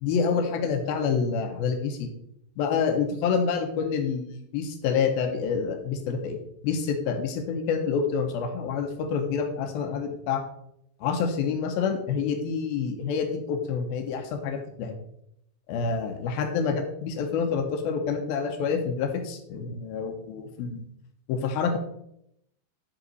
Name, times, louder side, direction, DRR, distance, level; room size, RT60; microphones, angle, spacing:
voice 1, 0.0-2.1 2.6-6.4 6.6-10.4 11.0-15.0 15.7-20.9 21.3-21.8, left 6 dB, 75° left, 5 dB, 2.5 m, -27 dB
10.0 x 4.1 x 4.0 m, 0.75 s
omnidirectional pair, 4.8 m